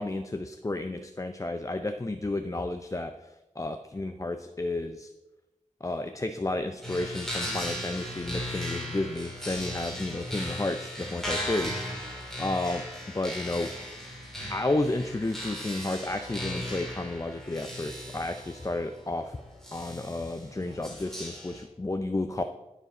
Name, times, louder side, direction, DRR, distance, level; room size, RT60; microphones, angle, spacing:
voice 1, 0.0-5.1 5.8-13.7 14.5-19.4 19.7-22.4, left 2 dB, 25° left, 8 dB, 0.5 m, -32 dB
sound 1, 6.8-21.6, equal, 5° left, 2.7 m, -37 dB
12.5 x 5.0 x 5.4 m, 1.0 s
wide cardioid pair, 65°, 13 cm